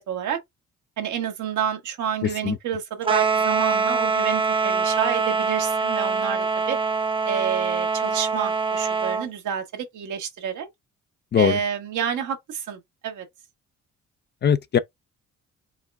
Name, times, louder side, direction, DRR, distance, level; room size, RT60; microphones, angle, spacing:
voice 1, 0.1-0.4 1.0-6.8 7.3-10.7 11.3-13.3, right 8 dB, 75° right, 1.3 m, -29 dB
voice 2, 2.2-2.6 11.3-11.6 14.4-14.8, left 8 dB, 35° left, 0.4 m, -21 dB
sound 1, 3.0-9.3, right 5 dB, 15° right, 0.7 m, -24 dB
4.7 x 2.2 x 3.4 m
cardioid pair, 90°, 30 cm